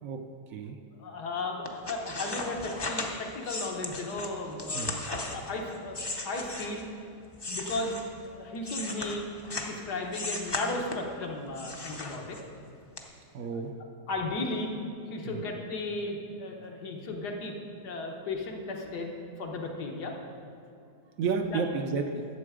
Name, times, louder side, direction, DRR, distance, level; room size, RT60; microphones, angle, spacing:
voice 1, 0.0-0.8 4.7-5.0 9.7-9.8 13.3-13.7 15.2-15.4 21.2-22.3, right 5 dB, 65° right, 6 dB, 0.9 m, -32 dB
voice 2, 1.0-6.0 6.2-6.9 7.5-9.2 9.7-12.4 14.1-14.7 15.1-17.5 17.8-19.1 19.4-20.1 21.5-21.6, left 2 dB, 80° left, 1 dB, 1.7 m, -35 dB
sound 1, 1.6-6.9 7.3-9.8 10.1-11.1 11.5-12.6 13.0-13.1, left 2 dB, 30° left, 0.4 m, -36 dB
11.5 x 7.4 x 4.9 m, 2.4 s
omnidirectional pair, 1.7 m